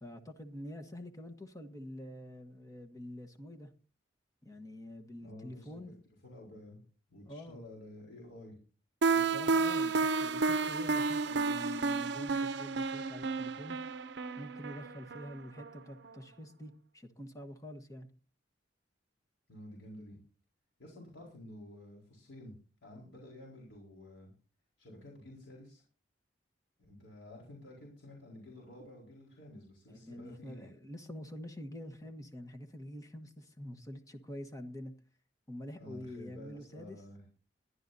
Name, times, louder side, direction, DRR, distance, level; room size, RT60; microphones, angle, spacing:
voice 1, 0.0-3.7 4.4-5.9 7.3-7.6 9.1-13.8 14.4-18.1 29.9-34.9 35.5-37.0, left 1 dB, 20° left, 1.3 m, -46 dB
voice 2, 5.2-5.9 6.2-6.8 7.1-8.5 19.5-20.2 20.8-22.5 22.8-24.3 24.8-25.8 26.8-30.7 35.8-37.3, left 1 dB, 80° left, 4.4 m, -51 dB
sound 1, 9.0-15.8, right 4 dB, 65° right, 0.6 m, -31 dB
21.5 x 11.0 x 2.7 m
head